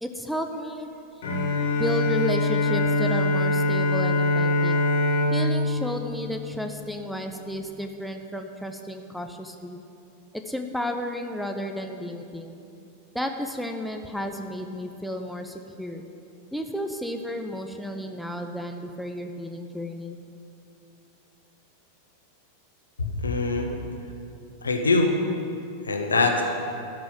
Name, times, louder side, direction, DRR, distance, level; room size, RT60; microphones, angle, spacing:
voice 1, 0.0-0.9 1.7-4.8 5.3-9.8 10.5-12.6 13.1-16.0 16.5-20.2, equal, ahead, 5 dB, 0.8 m, -32 dB
Bowed string instrument, 1.2-7.1, left 1 dB, 60° left, 2.3 m, -24 dB
voice 2, 23.0-23.8 24.6-25.1 25.9-26.4, left 3 dB, 75° left, 3 dB, 1.4 m, -23 dB
13.0 x 6.2 x 9.0 m, 2.7 s
figure-of-eight pair, 90°, 0 cm